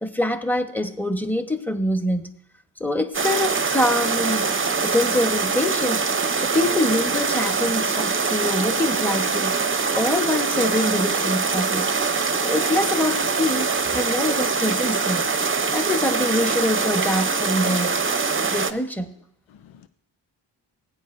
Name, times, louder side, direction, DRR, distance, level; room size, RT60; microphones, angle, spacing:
voice 1, 0.0-2.3 2.8-4.4 4.8-6.0 6.4-9.5 10.0-15.3 15.7-18.0 18.5-19.1, left 1 dB, 5° left, 1.2 m, -25 dB
sound 1, 3.1-18.7, right 4 dB, 25° right, 0.8 m, -23 dB
voice 2, 18.3-18.8 19.5-19.9, left 9 dB, 85° left, 0.7 m, -51 dB
16.0 x 9.4 x 2.7 m
cardioid pair, 50°, 45 cm